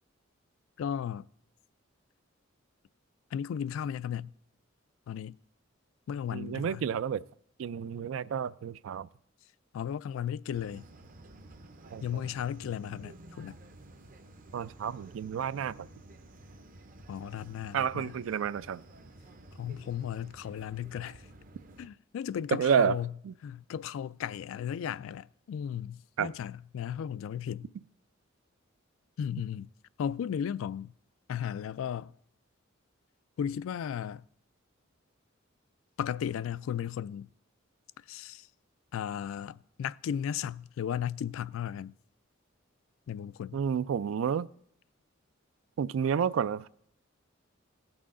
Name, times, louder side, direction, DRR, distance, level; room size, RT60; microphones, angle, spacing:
voice 1, 0.8-1.3 3.3-4.3 5.1-5.4 6.1-6.8 9.7-10.8 12.0-13.6 17.1-18.1 19.6-21.2 21.8-23.1 23.4-27.7 29.2-29.7 30.0-30.9 31.3-32.1 33.4-34.2 36.0-37.3 38.1-38.5 38.9-41.9 43.1-43.6, left 8 dB, 80° left, 0.3 m, -35 dB
voice 2, 6.3-7.2 7.6-9.1 11.9-12.2 14.5-15.9 17.7-18.8 22.5-23.0 23.2-23.3 26.2-26.3 43.5-44.5 45.8-46.7, right 7 dB, 75° right, 0.3 m, -30 dB
sound 1, 10.5-21.9, right 2 dB, 45° right, 0.6 m, -52 dB
17.5 x 6.1 x 3.7 m
head